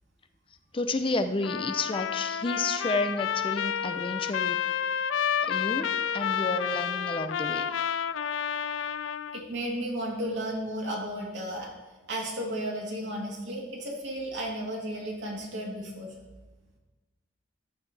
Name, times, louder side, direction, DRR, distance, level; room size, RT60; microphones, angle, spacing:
voice 1, 0.7-4.6 5.4-7.6, left 2 dB, 30° left, 9 dB, 0.5 m, -31 dB
Trumpet, 1.4-9.5, left 8 dB, 85° left, 0.4 m, -30 dB
voice 2, 9.3-11.7 12.1-16.1, right 1 dB, 70° right, -3 dB, 3.0 m, -33 dB
13.5 x 10.0 x 3.3 m, 1.2 s
head